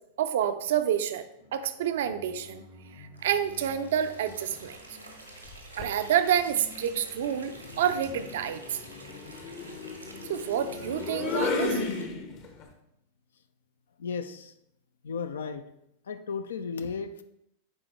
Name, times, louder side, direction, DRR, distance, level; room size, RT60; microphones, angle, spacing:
voice 1, 0.2-1.3 1.5-2.6 3.0-4.8 5.8-7.5 7.8-8.8 10.3-11.8, right 9 dB, 60° right, 10 dB, 0.5 m, -28 dB
sound 1, 1.4-13.0, left 1 dB, 90° left, 2.8 m, -53 dB
sound 2, 3.1-12.0, right 1 dB, 90° right, 1.2 m, -49 dB
sound 3, 5.5-6.0 7.4-12.6, left 4 dB, 40° left, 0.9 m, -34 dB
voice 2, 14.0-14.5 15.0-15.7 16.0-17.2, left 5 dB, 65° left, 10 dB, 0.5 m, -34 dB
9.8 x 4.1 x 3.2 m, 0.80 s
figure-of-eight pair, 90°, 0 cm